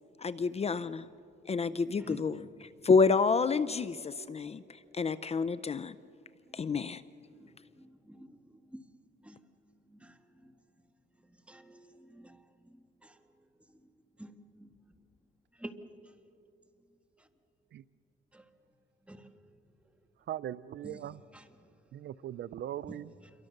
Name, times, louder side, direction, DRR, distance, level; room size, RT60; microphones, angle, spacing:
voice 1, 0.2-1.1 1.5-4.6 4.9-6.0 6.5-7.0, left 4 dB, 30° left, 15 dB, 0.6 m, -29 dB
voice 2, 7.8-8.3 8.7-8.8 9.2-9.4 10.0-10.1 11.5-12.4 13.0-13.2 14.2-14.6 15.6-15.8 18.3-18.4 19.1-19.3 20.8-21.0 21.3-21.5 22.9-23.0, right 1 dB, 5° right, 7 dB, 1.8 m, -48 dB
voice 3, 20.3-21.2 21.9-23.1, right 11 dB, 60° right, 17 dB, 0.5 m, -39 dB
28.0 x 23.0 x 6.6 m, 2.7 s
cardioid pair, 90°, 20 cm